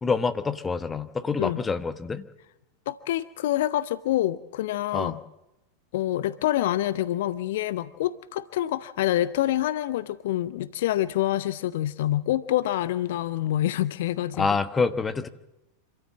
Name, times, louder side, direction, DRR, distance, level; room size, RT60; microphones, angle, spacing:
voice 1, 0.0-2.2 4.9-5.2 14.4-15.3, left 4 dB, 15° left, 11 dB, 1.2 m, -26 dB
voice 2, 2.9-5.2 5.9-14.5, left 13 dB, 55° left, 17 dB, 0.7 m, -26 dB
26.5 x 13.0 x 7.4 m, 0.93 s
figure-of-eight pair, 90°, 0 cm